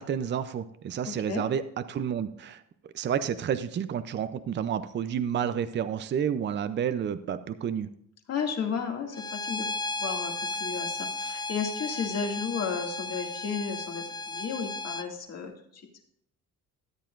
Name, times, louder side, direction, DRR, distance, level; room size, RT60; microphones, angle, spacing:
voice 1, 0.0-2.6 2.9-7.9, right 8 dB, 35° right, 12 dB, 0.6 m, -30 dB
voice 2, 1.1-1.4 8.3-9.7 10.0-10.3 10.6-15.9, left 6 dB, 50° left, 2 dB, 2.3 m, -33 dB
Bowed string instrument, 9.1-15.1, left 3 dB, 15° left, 0.4 m, -34 dB
13.5 x 9.7 x 2.5 m, 0.69 s
cardioid pair, 130°, 32 cm